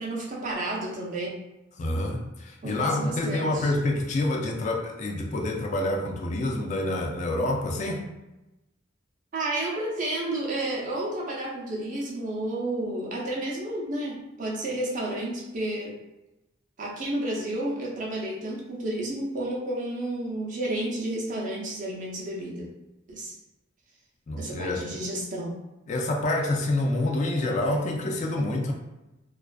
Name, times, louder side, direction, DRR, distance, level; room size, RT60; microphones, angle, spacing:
voice 1, 0.0-1.4 2.6-3.7 9.3-16.0 16.8-22.7 23.1-23.3 24.3-25.5, right 1 dB, 40° right, -3 dB, 0.5 m, -31 dB
voice 2, 1.8-8.1 24.3-24.8 25.9-28.7, left 1 dB, 40° left, 1 dB, 0.3 m, -27 dB
2.4 x 2.3 x 2.2 m, 0.98 s
head